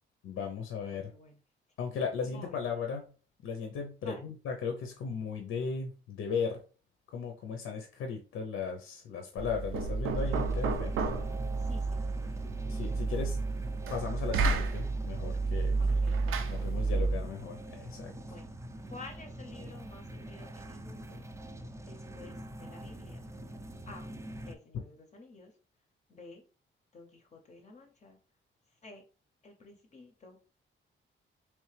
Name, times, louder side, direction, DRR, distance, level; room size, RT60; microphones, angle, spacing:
voice 1, 0.2-1.1 1.8-3.1 3.4-6.6 7.1-10.9 12.7-13.4 13.9-15.7 16.5-18.1, left 5 dB, 90° left, 3 dB, 0.6 m, -36 dB
voice 2, 0.9-1.4 2.2-2.6 4.0-4.2 11.6-12.6 15.8-16.9 18.3-18.5 18.9-21.2 21.8-23.3 23.9-24.1 24.4-25.6 26.1-26.4 26.9-28.2 28.7-29.0 29.4-30.4, left 3 dB, 35° left, 3 dB, 0.6 m, -51 dB
Knock, 9.4-17.3, right 3 dB, 80° right, 0.5 m, -31 dB
sound 1, 10.2-24.5, right 1 dB, 15° right, 0.4 m, -45 dB
3.3 x 3.1 x 3.2 m, 0.37 s
wide cardioid pair, 165°, 21 cm